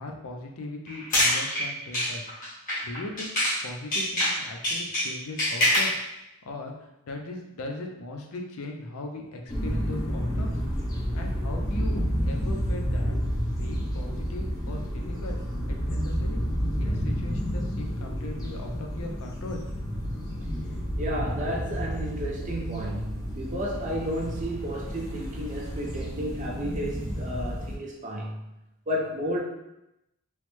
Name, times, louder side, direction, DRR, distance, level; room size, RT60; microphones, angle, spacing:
voice 1, 0.0-2.2 2.8-3.3 3.6-6.0 6.4-10.6 11.1-13.2 13.5-15.4 15.6-16.4 16.8-19.6, left 2 dB, 80° left, 2 dB, 0.5 m, -39 dB
sound 1, 0.9-3.6 3.9-6.0, left 1 dB, 40° left, 1.0 m, -26 dB
sound 2, 9.5-27.7, equal, 15° left, 0.6 m, -30 dB
voice 2, 21.0-28.3 28.9-29.4, equal, 35° right, -2 dB, 0.5 m, -32 dB
3.1 x 2.0 x 3.0 m, 0.89 s
head